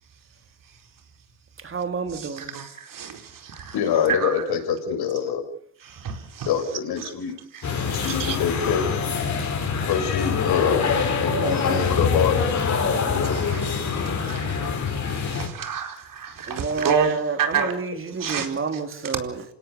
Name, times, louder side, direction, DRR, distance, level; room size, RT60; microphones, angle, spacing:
voice 1, 0.6-1.0 2.1-4.5 5.8-7.1 7.5-8.5 13.2-17.8 18.2-19.1, right 7 dB, 55° right, 4.5 m, -31 dB
voice 2, 1.6-2.6 11.2-12.1 15.3-15.4 16.5-19.4, right 4 dB, 30° right, 3.7 m, -29 dB
voice 3, 3.7-5.4 6.5-7.4 7.8-8.9 9.9-10.9 11.2-12.4, left 8 dB, 65° left, 6.7 m, -25 dB
sound 1, 7.6-15.5, left 5 dB, 45° left, 5.5 m, -25 dB
28.0 x 17.5 x 6.9 m
cardioid pair, 105°, 40 cm